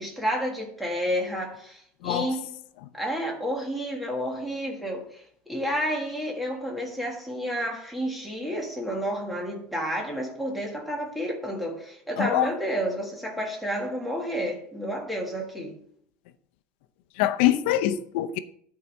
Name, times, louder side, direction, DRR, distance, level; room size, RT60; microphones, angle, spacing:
voice 1, 0.0-2.5 2.9-15.8, equal, ahead, 1.7 m, -30 dB
voice 2, 12.2-12.5 17.2-18.4, left 13 dB, 85° left, 0.7 m, -24 dB
11.5 x 4.8 x 5.4 m
cardioid pair, 170°, 6 cm